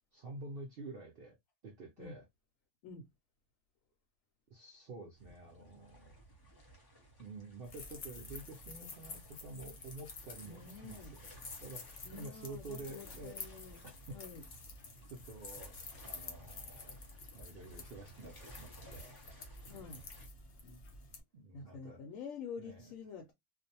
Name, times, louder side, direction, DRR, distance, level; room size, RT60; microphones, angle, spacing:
voice 1, 0.1-1.4 1.6-2.2 4.5-6.2 7.2-11.1 11.6-13.4 14.1-14.2 15.1-15.8 16.0-17.0 17.3-19.2 19.7-20.0 21.3-22.1 22.6-22.9, right 2 dB, 65° right, 0.6 m, -49 dB
sound 1, 5.1-20.3, right 1 dB, 20° left, 0.6 m, -58 dB
sound 2, 7.6-21.2, left 3 dB, 55° left, 0.8 m, -50 dB
voice 2, 10.5-11.1 12.0-13.8 14.1-14.4 19.7-20.0 21.5-23.3, left 5 dB, 75° left, 0.9 m, -48 dB
2.5 x 2.0 x 2.7 m
omnidirectional pair, 1.5 m